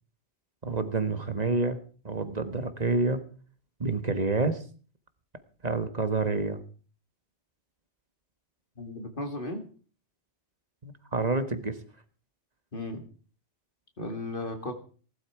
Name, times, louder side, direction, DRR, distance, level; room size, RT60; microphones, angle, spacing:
voice 1, 0.6-3.2 3.8-4.6 5.6-6.6 10.8-11.8, right 3 dB, 35° right, 10 dB, 1.5 m, -28 dB
voice 2, 8.8-9.6 12.7-13.0 14.0-14.7, left 2 dB, 50° left, 5 dB, 2.5 m, -35 dB
18.5 x 12.5 x 4.7 m, 0.41 s
omnidirectional pair, 1.2 m